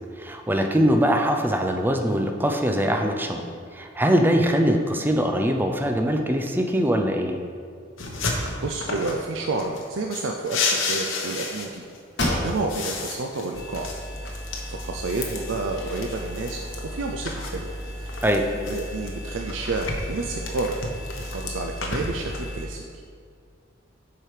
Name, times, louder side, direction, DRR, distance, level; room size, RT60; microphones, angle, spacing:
voice 1, 0.2-3.4 3.7-7.4 18.2-18.5, equal, 10° right, 3 dB, 0.5 m, -22 dB
sound 1, 8.0-9.2 9.6-12.0 12.3-16.8 17.2-19.1 19.5-22.4, left 3 dB, 75° left, 1.0 m, -32 dB
voice 2, 8.6-11.8 12.2-13.9 14.7-16.6 16.9-17.7 18.7-20.8 21.2-23.0, right 3 dB, 70° right, 2 dB, 0.5 m, -30 dB
sound 2, 12.1-13.0 13.4-13.5 14.1-15.0, left 1 dB, 60° left, 1.6 m, -29 dB
sound 3, 13.5-22.7, equal, 20° left, 1.0 m, -36 dB
7.5 x 4.9 x 4.9 m, 2.2 s
head